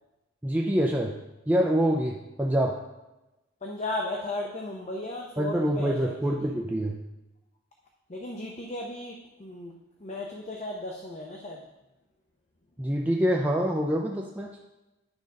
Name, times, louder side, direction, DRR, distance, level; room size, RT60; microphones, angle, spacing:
voice 1, 0.4-1.1 1.5-2.8 5.4-7.0 12.8-14.5, equal, 10° right, -1 dB, 0.5 m, -26 dB
voice 2, 3.6-6.1 8.1-11.6, left 2 dB, 35° left, 0 dB, 0.7 m, -35 dB
9.7 x 4.0 x 5.2 m, 1.0 s
head